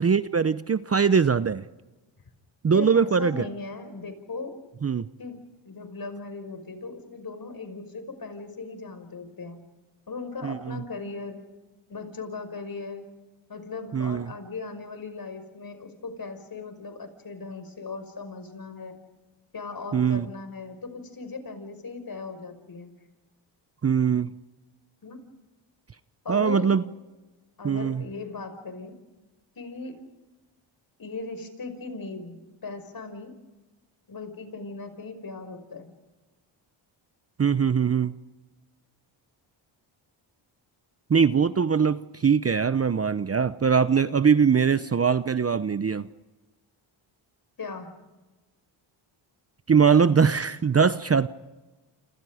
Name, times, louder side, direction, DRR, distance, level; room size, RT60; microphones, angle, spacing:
voice 1, 0.0-1.6 2.6-3.4 4.8-5.1 10.4-10.8 13.9-14.3 19.9-20.3 23.8-24.3 26.3-26.8 27.6-28.0 37.4-38.1 41.1-46.1 49.7-51.3, right 6 dB, 30° right, 14 dB, 0.8 m, -22 dB
voice 2, 2.7-4.5 5.2-5.4 5.7-9.6 10.1-11.5 11.9-13.1 13.5-19.0 19.5-22.9 25.0-25.2 26.2-26.7 27.6-29.0 29.6-30.0 31.0-33.3 34.1-35.9 47.6-47.9, left 4 dB, 45° left, 9 dB, 5.6 m, -38 dB
29.0 x 27.5 x 5.0 m, 1.2 s
cardioid pair, 75°, 49 cm